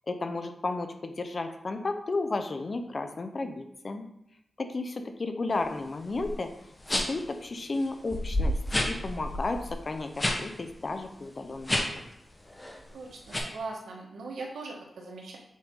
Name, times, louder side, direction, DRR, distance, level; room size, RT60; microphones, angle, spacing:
voice 1, 0.1-4.1 4.6-6.5 6.9-8.6 8.8-11.9, left 3 dB, 50° left, 7 dB, 0.8 m, -33 dB
sound 1, 6.1-6.3 6.8-7.3 7.8-7.9 8.1-10.4 10.7-10.9 11.6-12.1 12.5-12.8 13.3-13.4, left 1 dB, 25° left, 1.1 m, -29 dB
voice 2, 12.9-15.4, right 3 dB, 90° right, -1 dB, 1.3 m, -40 dB
7.3 x 3.9 x 3.8 m, 0.81 s
cardioid pair, 60°, 0 cm